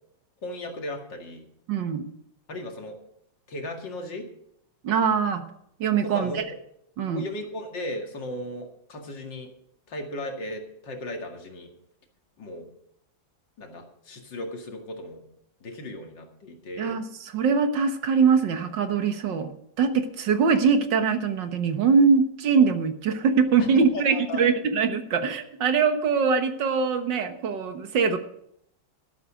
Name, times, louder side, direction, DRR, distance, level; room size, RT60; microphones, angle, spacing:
voice 1, 0.4-1.5 2.5-3.0 3.5-4.3 6.0-6.4 7.1-9.5 9.9-11.7 12.4-12.7 13.6-15.2 15.6-17.0 23.6-24.4, left 1 dB, 70° left, 3 dB, 2.7 m, -36 dB
voice 2, 1.7-2.1 4.8-5.4 5.8-6.4 7.0-7.2 16.8-28.2, right 5 dB, 70° right, 8 dB, 1.9 m, -23 dB
12.5 x 12.0 x 5.0 m, 0.72 s
omnidirectional pair, 2.1 m